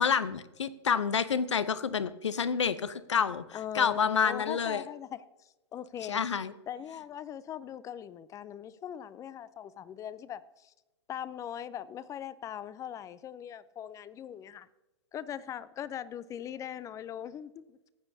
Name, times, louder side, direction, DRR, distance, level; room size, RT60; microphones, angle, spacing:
voice 1, 0.0-3.4 3.7-4.8 6.1-6.5, left 6 dB, 85° left, 0.7 m, -28 dB
voice 2, 3.5-6.2 6.7-10.7 11.1-14.7 15.1-17.8, left 10 dB, 20° left, 0.4 m, -40 dB
15.0 x 8.7 x 2.7 m
hypercardioid pair, 115°, 15 cm